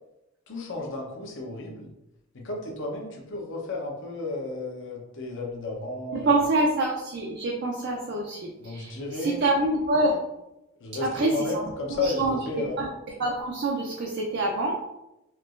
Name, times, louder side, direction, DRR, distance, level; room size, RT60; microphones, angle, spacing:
voice 1, 0.5-1.9 2.3-6.3 8.6-9.4 10.8-12.8, left 2 dB, 55° left, -1 dB, 0.7 m, -33 dB
voice 2, 6.1-10.2 11.0-11.6 12.0-12.4 12.8-12.9 13.2-14.8, right 2 dB, 50° right, -1 dB, 0.5 m, -26 dB
4.4 x 2.9 x 2.4 m, 0.92 s
head